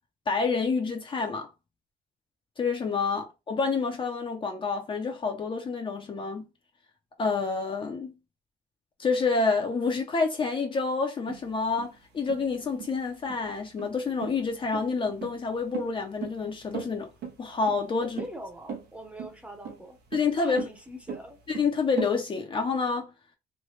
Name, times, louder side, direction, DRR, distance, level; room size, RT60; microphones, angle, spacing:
voice 1, 0.3-1.5 2.6-6.4 7.2-8.1 9.0-17.1 17.4-18.2 20.1-20.7 21.5-23.1, left 4 dB, 30° left, 0.6 m, -28 dB
sound 1, 11.3-22.1, right 7 dB, 70° right, 0.8 m, -39 dB
voice 2, 18.0-20.0 20.4-21.4, right 1 dB, 5° right, 0.8 m, -42 dB
3.2 x 2.2 x 3.1 m
cardioid pair, 110°, 17 cm